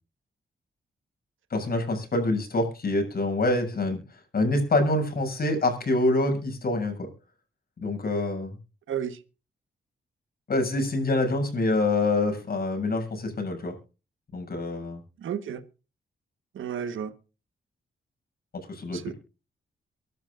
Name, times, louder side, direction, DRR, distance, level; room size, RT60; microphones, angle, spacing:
voice 1, 1.5-7.1 7.8-8.5 10.5-13.7 14.3-15.0 18.5-19.1, left 2 dB, 50° left, 7.6 m, -26 dB
voice 2, 8.9-9.2 15.2-15.6 16.5-17.1 18.9-19.1, right 8 dB, 85° right, 1.5 m, -32 dB
24.0 x 12.5 x 2.6 m
cardioid pair, 100°, 20 cm